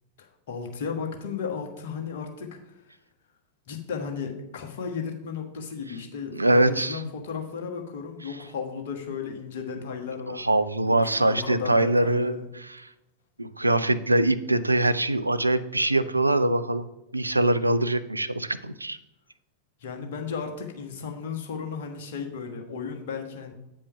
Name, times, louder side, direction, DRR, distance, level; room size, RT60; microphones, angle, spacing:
voice 1, 0.2-2.6 3.7-10.5 10.9-12.5 19.8-23.5, left 6 dB, 55° left, 3 dB, 1.4 m, -34 dB
voice 2, 6.3-7.0 10.3-12.4 12.6-12.9 13.4-16.9 17.1-19.0, right 1 dB, 85° right, 12 dB, 0.4 m, -23 dB
8.5 x 5.4 x 5.6 m, 0.91 s
figure-of-eight pair, 90°, 0 cm